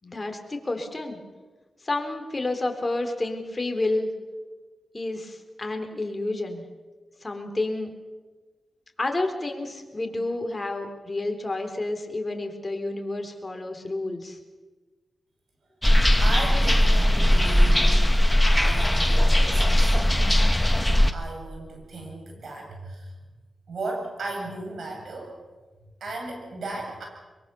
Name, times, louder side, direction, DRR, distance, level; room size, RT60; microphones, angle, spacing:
voice 1, 0.0-1.2 1.8-4.1 4.9-6.6 7.2-7.9 9.0-14.4, left 2 dB, 30° left, 5 dB, 3.8 m, -30 dB
sound 1, 15.8-21.1, left 1 dB, 10° left, 1.5 m, -19 dB
voice 2, 16.2-18.0 18.5-20.0 21.1-23.1 23.7-25.3 26.0-27.1, right 2 dB, 75° right, 1 dB, 7.7 m, -35 dB
23.0 x 22.5 x 7.0 m, 1.3 s
cardioid pair, 55°, 0 cm